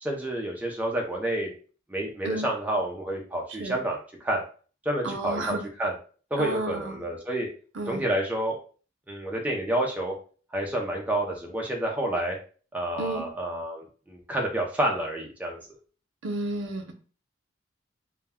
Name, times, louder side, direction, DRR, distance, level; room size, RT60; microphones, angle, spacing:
voice 1, 0.0-1.5 1.9-4.4 4.8-5.9 6.3-7.5 7.9-8.6 9.1-10.1 10.5-12.4 12.7-15.6, right 1 dB, 10° right, -1 dB, 0.4 m, -29 dB
voice 2, 5.0-5.6 6.4-7.0 7.7-8.0 13.0-13.2 16.2-16.9, right 2 dB, 85° right, 4 dB, 0.6 m, -31 dB
2.1 x 2.1 x 3.4 m, 0.40 s
head